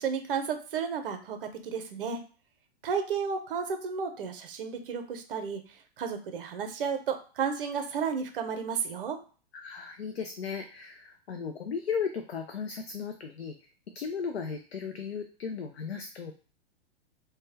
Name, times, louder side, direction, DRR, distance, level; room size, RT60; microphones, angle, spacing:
voice 1, 0.0-2.2 2.8-5.6 6.0-9.2, right 6 dB, 60° right, 7 dB, 0.6 m, -32 dB
voice 2, 9.6-13.7 13.9-16.3, left 6 dB, 75° left, 6 dB, 0.5 m, -36 dB
2.2 x 2.1 x 3.3 m, 0.39 s
figure-of-eight pair, 105°, 32 cm